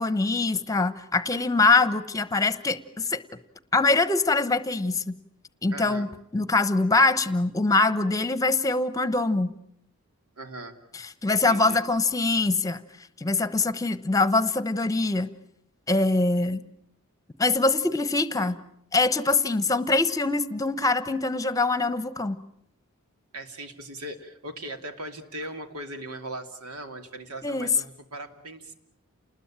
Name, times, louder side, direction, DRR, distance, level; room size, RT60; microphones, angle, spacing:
voice 1, 0.0-3.2 3.7-5.1 5.6-6.1 6.3-9.5 11.2-12.8 13.2-15.3 15.9-16.6 17.4-18.6 18.9-22.4 27.4-27.7, left 3 dB, 15° left, 14 dB, 1.0 m, -23 dB
voice 2, 5.7-6.1 10.4-10.8 11.5-11.8 23.3-28.7, right 1 dB, 85° right, 7 dB, 2.6 m, -39 dB
29.5 x 20.5 x 8.8 m, 0.75 s
head